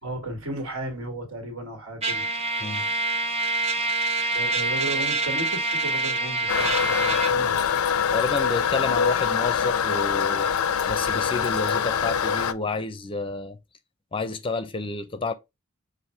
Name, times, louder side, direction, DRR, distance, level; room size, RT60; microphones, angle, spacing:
voice 1, 0.0-2.2 4.2-7.7, right 1 dB, 80° right, 1.8 m, -34 dB
Trumpet, 2.0-7.4, right 2 dB, 30° right, 0.8 m, -26 dB
Toilet flush, 6.5-12.5, left 7 dB, 85° left, 0.4 m, -24 dB
voice 2, 8.1-10.5 10.9-13.6 14.1-15.3, left 3 dB, 25° left, 0.5 m, -30 dB
5.8 x 2.5 x 3.2 m
head